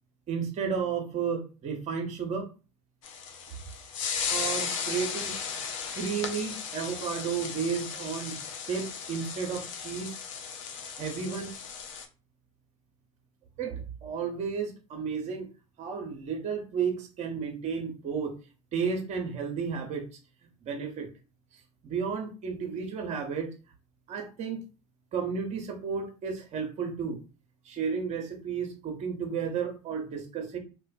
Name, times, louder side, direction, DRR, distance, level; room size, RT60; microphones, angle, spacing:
voice 1, 0.3-2.5 4.3-5.3 5.9-8.4 8.7-10.1 10.9-11.6 13.6-15.5 15.8-18.3 18.7-20.1 20.7-21.1 21.8-23.5 24.1-24.6 25.1-27.2 27.6-30.6, right 6 dB, 40° right, 4 dB, 0.8 m, -32 dB
sound 1, 3.0-12.0, left 6 dB, 70° left, 0.5 m, -36 dB
2.4 x 2.2 x 2.4 m, 0.32 s
hypercardioid pair, 70°, 17 cm